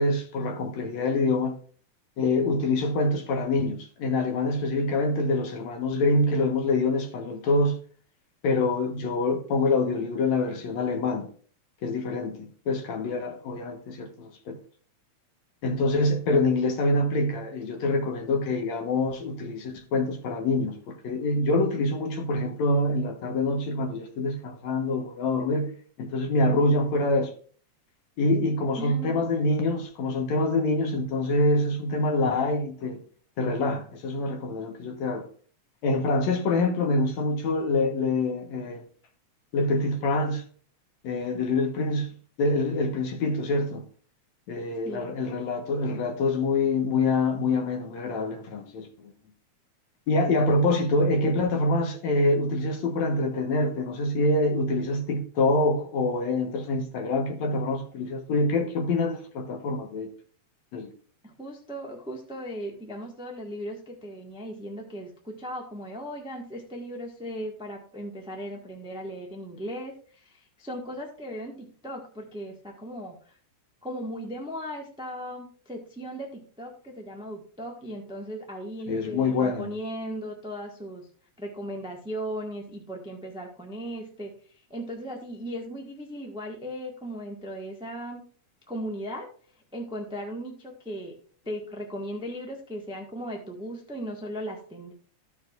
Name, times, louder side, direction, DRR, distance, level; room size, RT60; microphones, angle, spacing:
voice 1, 0.0-1.6 2.2-7.8 8.4-11.3 11.8-14.6 15.6-25.7 26.0-27.3 28.2-33.0 33.4-35.2 35.8-38.8 39.5-40.4 41.0-43.8 44.5-49.1 50.1-60.1 60.7-60.9 78.9-79.7, left 2 dB, 70° left, 2.4 m, -25 dB
voice 2, 28.8-29.2 44.8-45.2 61.2-73.1 73.8-81.1 81.4-84.3 84.7-88.2 88.7-89.3 89.7-91.1 91.4-94.9, equal, 5° right, 0.5 m, -37 dB
14.0 x 6.3 x 2.5 m
omnidirectional pair, 3.3 m